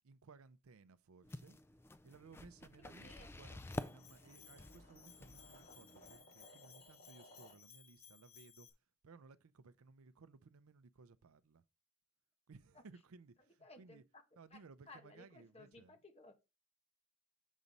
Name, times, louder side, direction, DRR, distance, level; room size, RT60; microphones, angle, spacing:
voice 1, 0.0-1.6 2.0-8.7 9.0-11.6 12.5-14.0 14.4-16.0, right 4 dB, 80° right, 0.5 m, -60 dB
sound 1, 1.2-6.2, left 1 dB, 10° left, 0.3 m, -50 dB
voice 2, 2.8-3.3 13.6-14.2 14.5-16.4, left 2 dB, 30° left, 1.3 m, -59 dB
Bell, 3.6-8.7, left 8 dB, 75° left, 2.0 m, -62 dB
sound 2, 3.6-7.7, equal, 45° left, 2.6 m, -63 dB
7.2 x 4.1 x 5.1 m
head